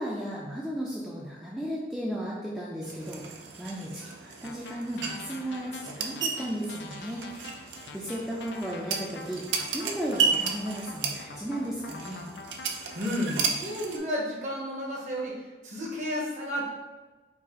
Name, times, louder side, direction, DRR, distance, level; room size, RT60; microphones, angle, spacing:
voice 1, 0.0-7.3 7.9-12.3, right 1 dB, 5° right, -6 dB, 0.3 m, -35 dB
sound 1, 2.8-14.0, right 5 dB, 85° right, 0.4 m, -34 dB
sound 2, 4.4-13.0, left 4 dB, 85° left, 0.4 m, -45 dB
voice 2, 12.9-15.4 15.6-16.7, equal, 40° right, -3 dB, 0.8 m, -32 dB
4.6 x 2.4 x 2.9 m, 1.2 s
head